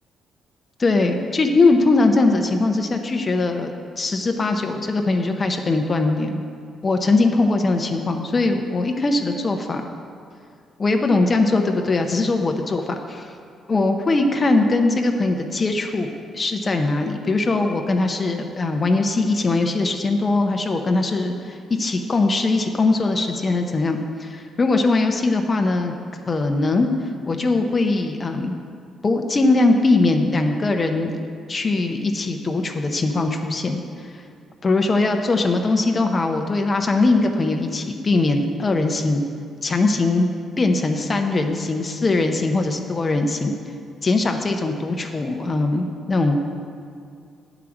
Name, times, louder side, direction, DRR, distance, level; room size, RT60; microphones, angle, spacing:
voice 1, 0.8-6.4 6.8-9.8 10.8-13.3 13.7-16.1 16.3-25.9 26.3-26.9 27.3-28.6 29.0-31.2 31.5-33.8 34.1-34.2 34.6-39.2 39.6-40.3 40.6-43.5 44.0-46.4, left 3 dB, 35° left, 4 dB, 0.7 m, -21 dB
9.2 x 4.9 x 7.1 m, 2.3 s
cardioid pair, 90°, 0 cm